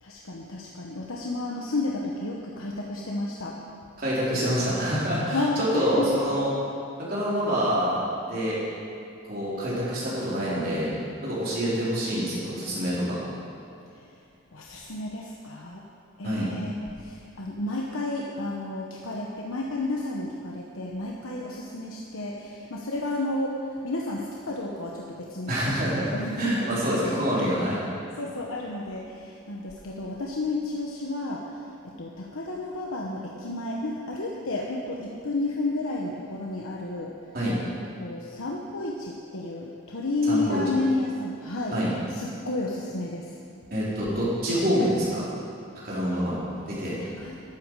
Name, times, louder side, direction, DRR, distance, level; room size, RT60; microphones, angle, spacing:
voice 1, 0.0-3.6 5.3-6.1 13.9-14.0 14.5-15.8 16.2-27.5 28.2-37.1 38.0-41.8 42.1-43.3 47.0-47.3, left 2 dB, 75° left, -2 dB, 1.2 m, -31 dB
voice 2, 4.0-6.5 7.1-8.6 9.2-10.9 11.2-13.2 16.2-16.5 25.5-27.8 37.3-37.6 40.3-40.6 41.7-41.9 43.7-45.2 45.8-46.4 46.7-47.0, equal, 45° right, -8 dB, 3.9 m, -26 dB
13.5 x 12.0 x 4.8 m, 2.5 s
head